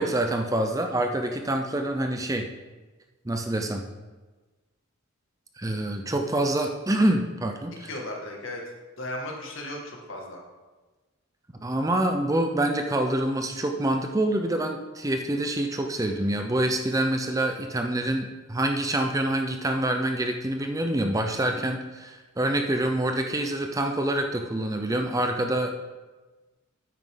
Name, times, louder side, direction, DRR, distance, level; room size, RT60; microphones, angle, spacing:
voice 1, 0.0-2.5 3.3-3.9 5.6-7.9 11.6-25.9, right 1 dB, 15° right, 4 dB, 0.6 m, -26 dB
voice 2, 7.9-8.6 9.0-10.4, left 1 dB, 65° left, 0 dB, 2.0 m, -35 dB
9.4 x 9.3 x 3.8 m, 1.2 s
head